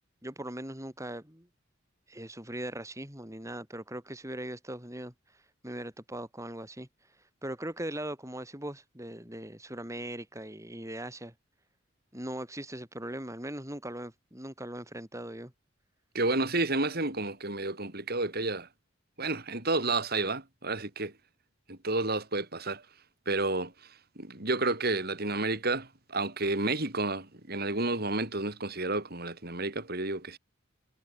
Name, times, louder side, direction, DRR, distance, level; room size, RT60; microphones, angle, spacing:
voice 1, 0.2-1.5 2.1-5.1 5.6-6.9 7.4-11.3 12.1-15.5, right 1 dB, 15° right, 5.9 m, -40 dB
voice 2, 16.1-18.7 19.2-21.1 21.7-22.8 23.3-30.4, right 2 dB, 50° right, 4.6 m, -31 dB
head